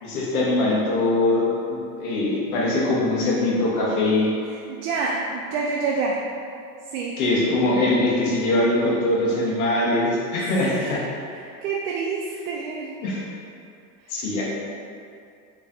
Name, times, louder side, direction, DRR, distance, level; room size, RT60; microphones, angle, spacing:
voice 1, 0.0-4.3 7.2-11.1 13.0-13.2 14.1-14.4, left 2 dB, 85° left, -5 dB, 1.0 m, -22 dB
voice 2, 4.5-6.2 6.9-7.2 10.7-10.9 11.3-13.0, right 4 dB, 85° right, -2 dB, 0.5 m, -28 dB
3.5 x 3.1 x 2.6 m, 2.4 s
supercardioid pair, 130°, 43 cm